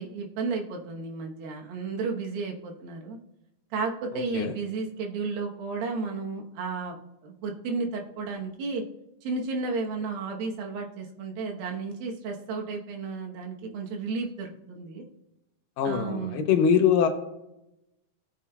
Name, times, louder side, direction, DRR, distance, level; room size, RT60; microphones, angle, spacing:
voice 1, 0.0-3.2 3.7-7.0 7.2-8.8 9.2-15.0 15.8-16.4, right 4 dB, 80° right, 2 dB, 2.9 m, -33 dB
voice 2, 15.8-17.1, left 7 dB, 75° left, 5 dB, 2.4 m, -22 dB
18.0 x 7.1 x 2.3 m, 0.89 s
omnidirectional pair, 4.2 m